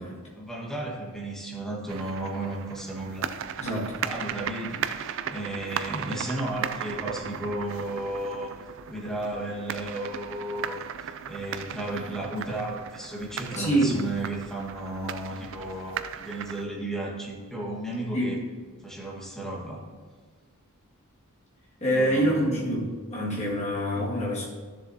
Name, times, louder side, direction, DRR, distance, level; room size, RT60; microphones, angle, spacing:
voice 1, 0.3-3.2 4.0-8.5 8.9-18.4 18.8-19.8 21.9-22.4 23.9-24.2, right 1 dB, ahead, -4 dB, 1.5 m, -34 dB
sound 1, 1.9-16.6, right 8 dB, 55° right, 0.4 m, -37 dB
voice 2, 3.6-3.9 13.5-14.0 18.1-18.4 21.8-24.5, right 1 dB, 30° left, -5 dB, 2.0 m, -26 dB
13.0 x 7.1 x 2.8 m, 1.5 s
head